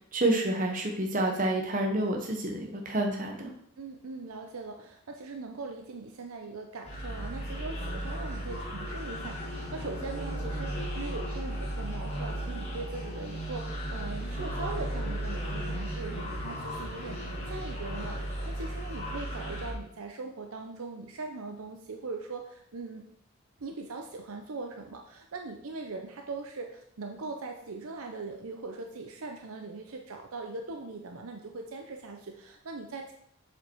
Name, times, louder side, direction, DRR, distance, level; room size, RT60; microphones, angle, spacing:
voice 1, 0.0-3.5, right 1 dB, 35° right, 2 dB, 0.9 m, -29 dB
voice 2, 3.8-23.1 23.6-33.1, right 3 dB, 80° right, 3 dB, 0.7 m, -40 dB
sound 1, 6.9-19.7, equal, 30° left, 1.6 m, -35 dB
7.3 x 5.2 x 4.5 m, 0.72 s
head